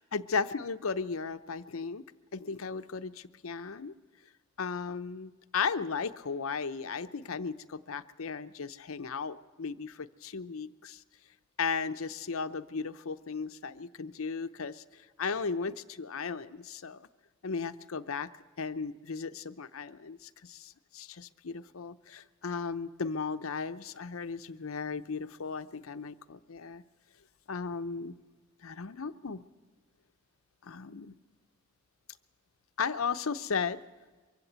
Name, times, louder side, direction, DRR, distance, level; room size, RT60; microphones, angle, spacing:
voice 1, 0.1-2.0 2.3-3.9 4.6-11.0 11.6-14.8 15.2-17.1 17.4-18.3 18.6-26.8 27.5-28.2 28.6-29.4 30.6-31.1 32.8-33.8, left 5 dB, 75° left, 11 dB, 0.7 m, -35 dB
23.5 x 15.5 x 8.0 m, 1.4 s
head